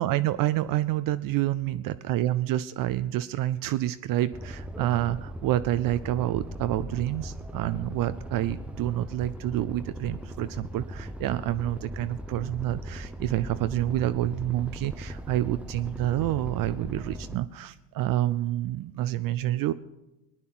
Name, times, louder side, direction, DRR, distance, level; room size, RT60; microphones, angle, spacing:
voice 1, 0.0-19.7, right 14 dB, 45° right, 13 dB, 0.6 m, -28 dB
sound 1, 4.3-17.4, equal, ahead, 0.8 m, -39 dB
19.5 x 9.8 x 5.9 m, 1.0 s
hypercardioid pair, 70°, 49 cm